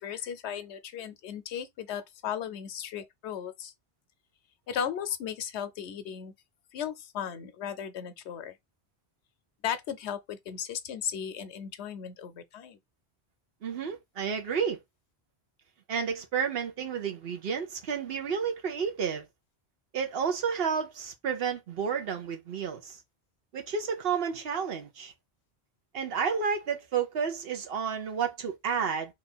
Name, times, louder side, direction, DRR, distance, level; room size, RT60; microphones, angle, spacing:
voice 1, 0.0-3.7 4.7-6.3 6.7-8.6 9.6-12.8, left 8 dB, 80° left, 0.9 m, -36 dB
voice 2, 13.6-14.8 15.9-19.3 19.9-23.0 23.5-25.1 25.9-29.1, right 6 dB, 65° right, 1.0 m, -31 dB
2.9 x 2.5 x 4.2 m
omnidirectional pair, 1.1 m